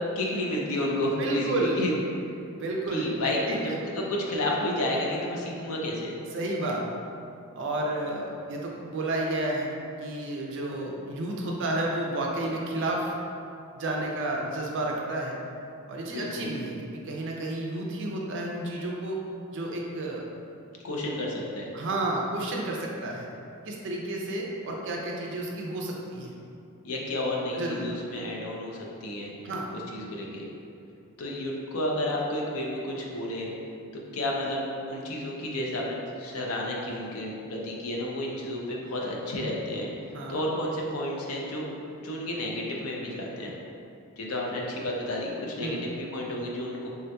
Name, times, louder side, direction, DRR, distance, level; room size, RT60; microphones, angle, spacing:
voice 1, 0.2-1.9 2.9-6.1 16.1-16.5 20.8-21.7 26.8-29.3 29.9-30.4 31.2-33.5 33.9-39.9 40.3-41.6 42.0-43.5 44.2-46.9, left 1 dB, 70° left, -2 dB, 0.5 m, -31 dB
voice 2, 1.2-1.8 2.6-3.1 3.5-3.6 6.3-6.9 7.5-9.7 10.0-13.1 13.7-15.4 15.9-16.7 17.0-19.2 19.5-20.2 21.7-23.3 23.7-26.3 27.5-27.9 29.4-29.7 40.1-40.4 45.6-45.8, right 2 dB, 55° right, -1 dB, 0.4 m, -31 dB
3.6 x 2.7 x 2.2 m, 2.6 s
head